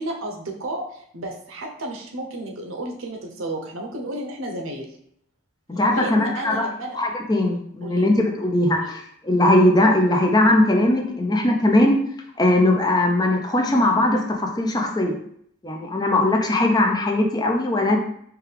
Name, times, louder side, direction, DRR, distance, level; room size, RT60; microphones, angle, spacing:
voice 1, 0.0-4.9 5.9-7.0 7.8-8.1 8.7-8.9, right 1 dB, 80° right, 2 dB, 0.8 m, -32 dB
voice 2, 5.7-6.7 7.0-12.0 12.4-15.2 15.6-18.0, left 1 dB, 20° left, 2 dB, 0.5 m, -19 dB
4.6 x 2.3 x 3.3 m, 0.67 s
head